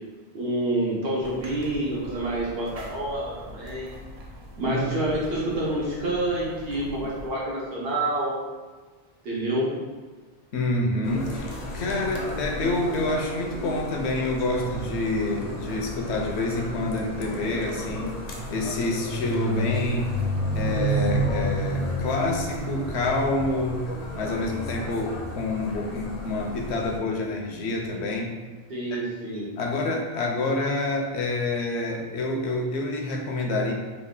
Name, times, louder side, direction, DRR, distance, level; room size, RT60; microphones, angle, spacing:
voice 1, 0.3-3.9 4.6-8.4 9.2-9.7 28.7-29.5, right 1 dB, 65° right, -5 dB, 1.2 m, -28 dB
sound 1, 1.2-7.3, equal, 50° right, 0.5 m, -43 dB
voice 2, 10.5-11.5 11.7-18.2 18.5-20.1 20.5-23.8 24.2-28.4 28.9-29.1 29.6-33.7, left 2 dB, 80° left, 1 dB, 0.9 m, -27 dB
sound 2, 11.0-27.0, left 1 dB, 50° left, 0.5 m, -36 dB
sound 3, 14.4-26.0 26.8-27.1, right 1 dB, 85° right, 1.2 m, -31 dB
3.2 x 2.4 x 3.6 m, 1.3 s
omnidirectional pair, 1.1 m